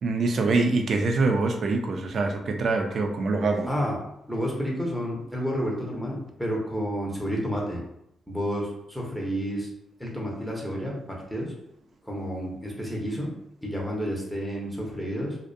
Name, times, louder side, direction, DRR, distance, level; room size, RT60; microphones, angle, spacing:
voice 1, 0.0-3.7, right 3 dB, 60° right, 4 dB, 0.4 m, -24 dB
voice 2, 3.7-4.0 4.3-7.8 8.3-9.7 10.0-11.5 12.0-13.3 13.6-15.4, equal, ahead, -3 dB, 0.7 m, -30 dB
2.5 x 2.1 x 2.6 m, 0.79 s
cardioid pair, 85°, 0 cm